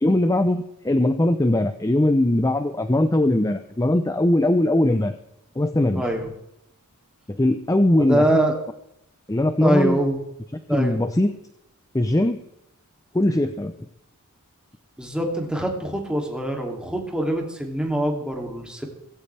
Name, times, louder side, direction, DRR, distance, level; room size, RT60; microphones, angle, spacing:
voice 1, 0.0-5.1 5.6-6.0 7.3-8.4 9.3-10.0 10.7-11.3 11.9-12.4 13.1-13.7, left 1 dB, 15° left, 9 dB, 0.6 m, -20 dB
voice 2, 5.9-6.3 8.0-8.5 9.6-10.2 10.7-11.0 15.0-18.9, right 1 dB, 5° right, 1 dB, 2.7 m, -24 dB
17.5 x 16.0 x 3.4 m, 0.81 s
head